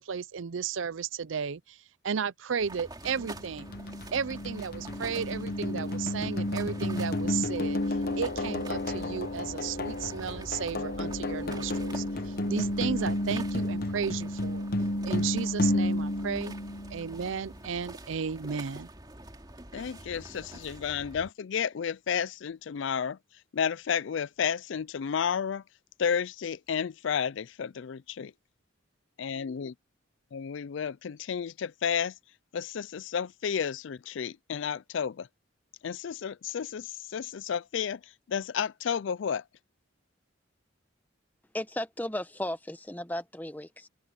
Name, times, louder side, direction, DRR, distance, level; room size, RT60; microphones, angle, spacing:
voice 1, 0.0-1.8 2.0-3.7 4.1-14.7 15.0-16.5 16.9-18.9, right 6 dB, 75° right, 0.5 m, -34 dB
sound 1, 2.6-21.3, right 1 dB, 20° right, 3.0 m, -46 dB
sound 2, 3.0-17.2, left 1 dB, 50° left, 1.0 m, -31 dB
voice 2, 19.7-23.2 23.5-25.6 26.0-28.3 29.2-29.7 30.3-32.1 32.5-35.3 35.8-38.0 38.3-39.4, left 7 dB, 65° left, 0.4 m, -32 dB
voice 3, 41.5-43.9, left 1 dB, 10° left, 1.0 m, -35 dB
head